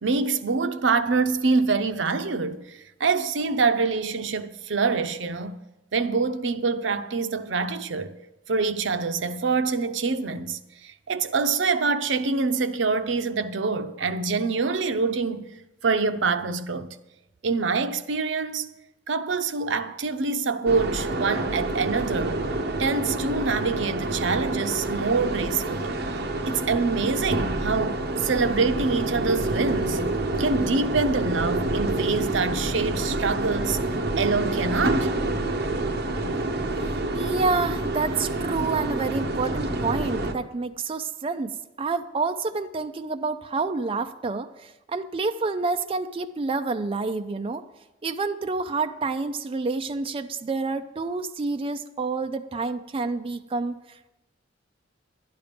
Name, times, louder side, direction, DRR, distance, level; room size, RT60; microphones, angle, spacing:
voice 1, 0.0-5.6 5.9-8.2 8.5-15.5 15.8-17.0 17.4-18.7 19.1-22.5 22.8-25.9 26.5-30.0 30.4-33.8 34.2-35.1, right 4 dB, 75° right, 0.6 m, -25 dB
sound 1, 20.7-40.3, right 2 dB, 55° right, 1.0 m, -28 dB
voice 2, 36.8-47.6 48.0-54.1, right 3 dB, 30° right, 0.4 m, -28 dB
11.5 x 10.5 x 5.2 m
head